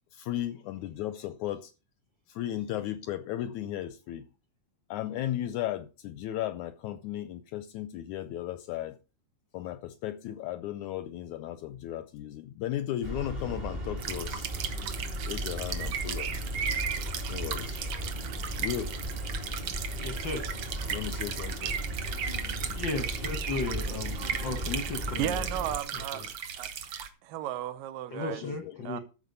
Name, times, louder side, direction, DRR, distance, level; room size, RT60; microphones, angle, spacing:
voice 1, 0.1-1.7 2.3-4.3 4.9-9.0 9.5-14.5 15.2-16.3 17.3-17.8 18.6-19.0 20.9-21.8 28.4-28.8, left 12 dB, 80° left, 1.8 m, -35 dB
sound 1, 13.0-25.8, equal, 20° right, 1.3 m, -36 dB
sound 2, 14.0-27.1, right 8 dB, 60° right, 2.0 m, -36 dB
voice 2, 20.0-20.5 22.7-25.5 26.1-26.3 28.1-29.0, left 3 dB, 60° left, 1.2 m, -35 dB
voice 3, 25.2-26.3 26.6-26.7 27.2-28.4 28.8-29.0, right 12 dB, 80° right, 2.6 m, -34 dB
13.5 x 5.3 x 6.7 m
omnidirectional pair, 4.0 m